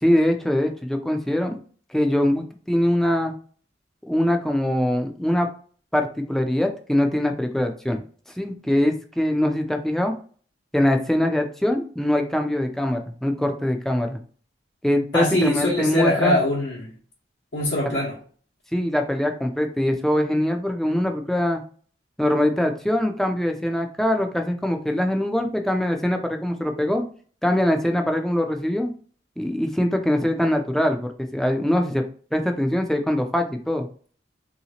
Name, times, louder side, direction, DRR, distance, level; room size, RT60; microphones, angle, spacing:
voice 1, 0.0-1.6 1.9-3.3 4.1-5.5 5.9-8.0 8.4-10.1 10.7-14.2 14.8-16.4 18.7-21.6 22.2-27.0 27.4-28.9 29.4-32.0 32.3-33.9, left 1 dB, ahead, 0.4 m, -23 dB
voice 2, 15.1-16.9 17.5-18.2, left 1 dB, 75° left, 1.0 m, -22 dB
3.1 x 2.8 x 2.9 m
head